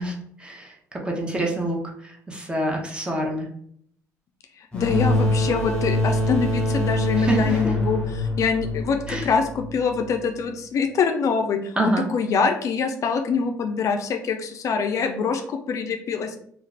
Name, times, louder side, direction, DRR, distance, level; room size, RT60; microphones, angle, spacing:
voice 1, 0.0-3.5 7.1-7.7 9.1-9.3 11.8-12.1, right 1 dB, 15° right, 0 dB, 0.8 m, -27 dB
voice 2, 4.6-16.4, left 5 dB, 55° left, 6 dB, 0.4 m, -24 dB
sound 1, 4.7-10.2, left 1 dB, 15° left, 1.3 m, -24 dB
2.4 x 2.4 x 3.2 m, 0.65 s
cardioid pair, 95°, 6 cm